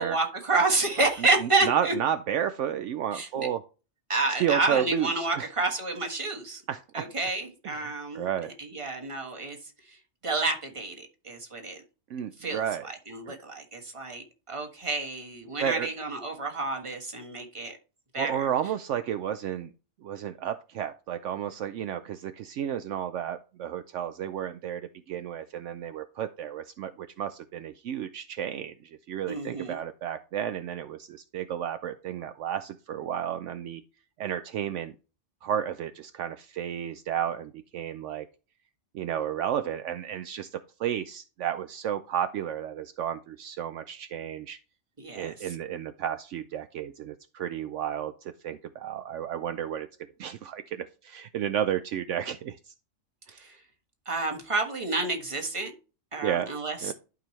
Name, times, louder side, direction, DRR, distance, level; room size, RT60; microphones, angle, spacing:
voice 1, 0.0-1.9 3.1-3.5 4.1-6.6 6.9-9.6 9.9-10.0 10.2-11.8 12.4-17.8 18.1-18.5 29.3-29.8 45.0-45.3 53.4-53.6 54.0-55.7 56.1-56.9, right 3 dB, 25° right, 3 dB, 1.5 m, -29 dB
voice 2, 1.2-3.6 4.4-5.5 6.7-7.1 7.6-8.5 12.1-12.9 13.3-13.4 15.6-15.9 18.2-19.7 20.0-33.8 34.2-34.9 35.4-38.3 38.9-44.6 45.2-49.9 50.2-52.7 53.3-53.5 56.2-56.5 56.8-56.9, right 9 dB, 70° right, 9 dB, 0.9 m, -32 dB
11.5 x 5.4 x 3.2 m, 0.34 s
omnidirectional pair, 1.3 m